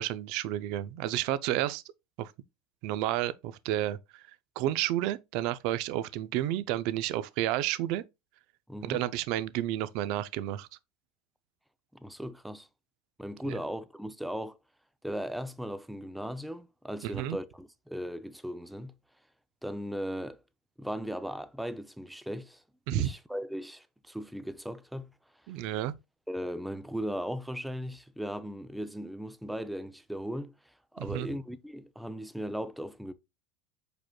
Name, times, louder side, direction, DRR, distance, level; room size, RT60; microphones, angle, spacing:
voice 1, 0.0-1.8 2.2-2.3 2.8-4.2 4.6-8.0 8.8-10.7 13.4-13.6 17.0-17.4 22.9-23.1 25.5-25.9 31.0-31.3, right 13 dB, 60° right, 0.4 m, -31 dB
voice 2, 8.7-9.0 12.0-12.7 13.2-14.6 15.0-18.9 19.6-20.4 20.8-22.6 22.9-25.1 26.3-30.5 30.9-33.1, equal, ahead, 0.4 m, -37 dB
5.0 x 4.4 x 2.2 m
supercardioid pair, 115°, 0 cm